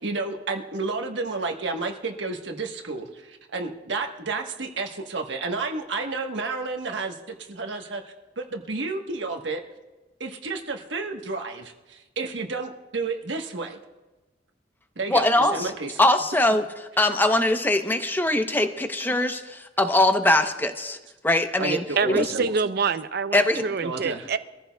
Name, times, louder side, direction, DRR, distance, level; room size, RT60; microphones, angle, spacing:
voice 1, 0.0-9.6 10.2-13.8 15.0-16.0 21.6-22.4 23.5-24.3, right 3 dB, 80° right, 3 dB, 1.2 m, -31 dB
voice 2, 15.1-15.7 16.0-16.6 17.0-21.0 21.2-22.3 23.3-23.6, left 1 dB, 10° left, 7 dB, 0.8 m, -22 dB
voice 3, 22.0-24.4, right 5 dB, 60° right, 12 dB, 0.6 m, -26 dB
24.5 x 14.5 x 2.3 m, 1.1 s
head